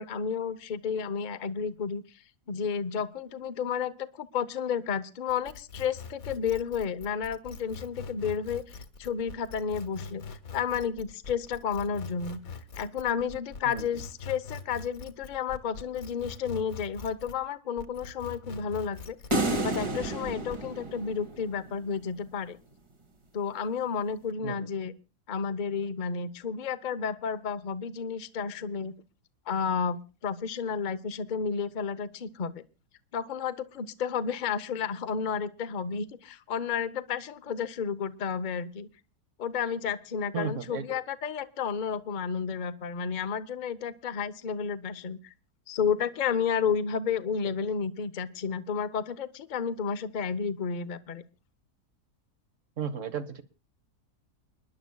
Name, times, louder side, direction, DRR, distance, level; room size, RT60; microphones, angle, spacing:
voice 1, 0.0-2.0 2.5-10.2 10.5-12.4 12.8-19.2 19.6-22.6 23.3-24.9 25.3-28.9 29.5-32.5 33.1-38.9 39.4-45.3 45.7-51.2, left 6 dB, 40° left, 12 dB, 0.7 m, -31 dB
sound 1, 5.3-17.5 17.8-20.6, left 4 dB, 60° left, 1.6 m, -43 dB
sound 2, 19.3-21.7, right 1 dB, 20° right, 0.9 m, -30 dB
voice 2, 40.3-41.0 52.8-53.4, right 6 dB, 55° right, 11 dB, 1.4 m, -34 dB
29.5 x 10.5 x 2.3 m, 0.32 s
omnidirectional pair, 1.7 m